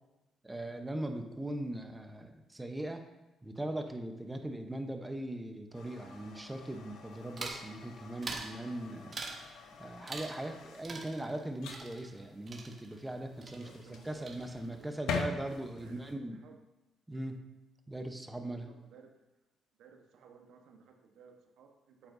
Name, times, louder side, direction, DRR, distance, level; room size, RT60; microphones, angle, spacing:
voice 1, 0.4-3.1 3.4-9.2 9.8-13.7 14.0-16.4 17.1-17.4 17.9-18.7, right 1 dB, 15° right, 5 dB, 0.9 m, -40 dB
sound 1, 5.7-16.1, left 4 dB, 85° left, 0.9 m, -45 dB
sound 2, 7.4-7.7 8.2-8.6 9.1-9.5 10.1-10.6 10.8-13.2 13.4-14.0 14.3-14.8, right 3 dB, 40° right, 1.4 m, -44 dB
voice 2, 13.4-14.4 14.7-15.2 15.5-16.6 18.5-19.2 19.8-22.1, right 6 dB, 80° right, 3 dB, 1.2 m, -58 dB
8.5 x 7.8 x 2.7 m, 1.0 s
cardioid pair, 90°, 0 cm